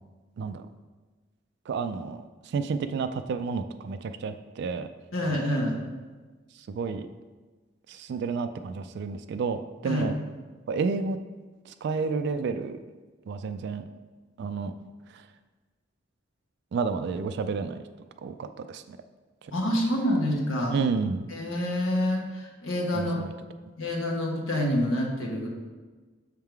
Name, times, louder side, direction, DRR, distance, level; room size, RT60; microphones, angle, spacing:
voice 1, 1.7-4.9 5.3-5.4 6.7-7.1 7.9-10.1 10.7-11.2 11.7-12.8 13.3-13.8 14.4-14.7 15.1-15.2 16.7-17.8 18.2-19.0 20.7-21.3 22.9-23.3, right 5 dB, 60° right, 9 dB, 0.3 m, -30 dB
voice 2, 5.1-5.8 9.8-10.0 19.5-20.8 21.3-23.2 23.8-25.5, left 1 dB, 90° left, -2 dB, 1.2 m, -27 dB
6.5 x 3.7 x 4.5 m, 1.3 s
head